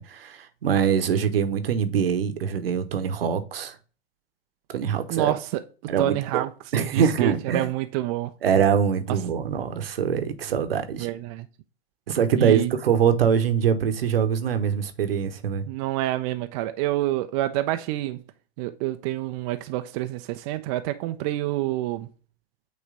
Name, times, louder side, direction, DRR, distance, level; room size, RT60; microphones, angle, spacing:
voice 1, 0.0-3.8 4.7-5.3 5.9-6.4 6.7-7.7 8.4-11.1 12.1-15.6, right 7 dB, 65° right, 0.9 m, -23 dB
voice 2, 5.1-5.6 6.0-6.5 6.9-8.3 11.0-11.5 12.4-12.7 15.7-18.2 18.6-22.1, right 15 dB, 35° right, 0.4 m, -27 dB
8.6 x 3.2 x 3.6 m
figure-of-eight pair, 95°, 31 cm